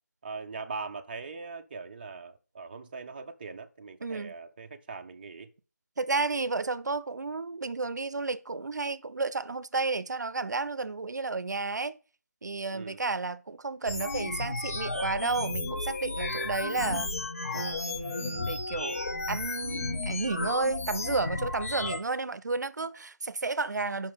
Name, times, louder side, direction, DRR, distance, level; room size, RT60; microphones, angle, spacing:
voice 1, 0.2-5.5 12.7-13.0, right 4 dB, 35° right, 0.5 m, -41 dB
voice 2, 4.0-4.3 6.0-12.0 12.4-17.1 17.5-24.1, right 3 dB, 85° right, 0.5 m, -32 dB
sound 1, 13.9-22.0, left 3 dB, 55° left, 0.9 m, -33 dB
5.3 x 5.2 x 5.1 m
figure-of-eight pair, 165°, 9 cm